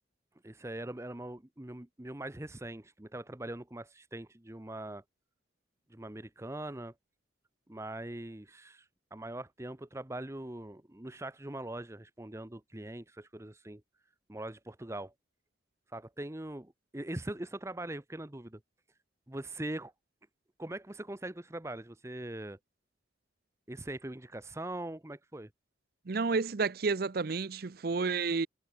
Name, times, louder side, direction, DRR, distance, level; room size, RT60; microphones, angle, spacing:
voice 1, 0.4-5.0 5.9-6.9 7.7-13.8 14.3-15.1 15.9-18.6 19.3-19.9 20.6-22.6 23.7-25.5, right 1 dB, 15° right, 0.8 m, -42 dB
voice 2, 26.1-28.5, right 4 dB, 50° right, 0.6 m, -30 dB
head